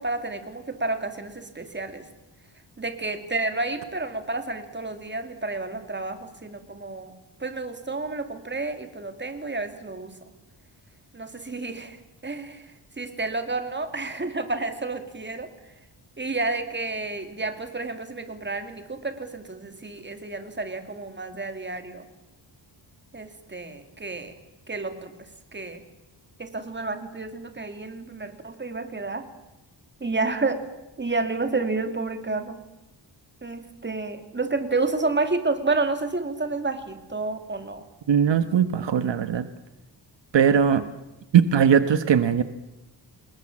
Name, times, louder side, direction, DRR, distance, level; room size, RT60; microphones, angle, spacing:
voice 1, 0.0-2.0 2.8-7.1 7.4-10.1 11.1-12.0 12.2-15.5 16.2-22.0 23.1-24.3 24.7-25.1 25.5-25.8 26.4-29.3 30.0-30.6 31.0-32.6 33.4-37.8 38.9-39.0, right 3 dB, 25° right, 7 dB, 2.8 m, -30 dB
voice 2, 38.1-39.4 40.3-40.8 41.3-42.4, right 8 dB, 70° right, 11 dB, 1.3 m, -19 dB
29.0 x 21.0 x 7.4 m, 0.98 s
wide cardioid pair, 135°, 45 cm